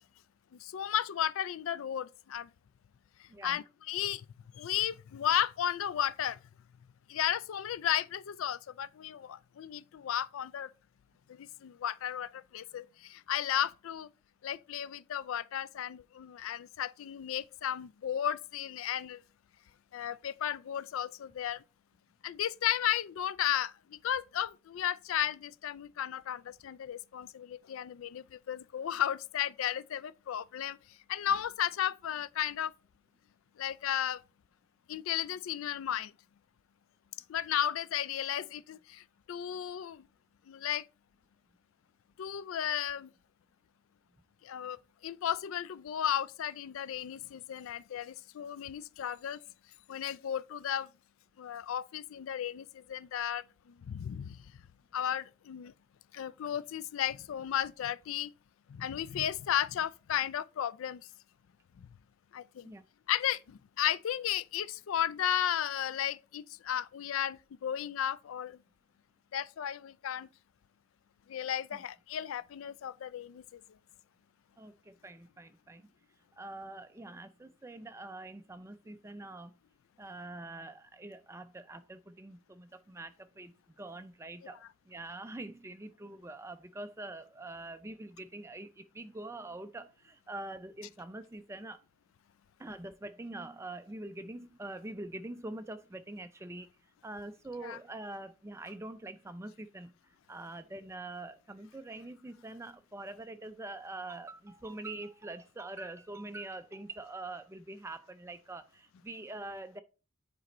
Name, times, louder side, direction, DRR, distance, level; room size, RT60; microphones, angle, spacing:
voice 1, 0.7-2.5 3.4-4.2 4.6-6.4 7.1-10.7 11.6-12.3 12.5-12.8 13.3-14.1 14.4-19.2 19.9-21.6 22.2-23.7 24.0-30.8 31.1-32.7 33.6-34.2 34.9-36.1 37.3-38.8 39.3-40.0 40.5-40.8 42.2-43.1 44.5-44.8 45.0-49.4 49.9-50.9 51.4-52.6 52.9-53.4 53.9-54.3 54.9-55.7 56.1-58.3 58.8-61.0 62.3-62.7 63.1-63.4 63.8-68.5 69.3-70.3 71.3-73.4 97.6-97.8, left 10 dB, 75° left, 0.3 m, -34 dB
voice 2, 3.3-3.6 62.6-62.8 71.7-71.8 74.6-75.9 76.4-79.5 80.0-91.8 92.6-96.7 97.0-99.9 100.3-109.8, right 2 dB, 15° right, 0.3 m, -44 dB
7.5 x 4.2 x 3.0 m
head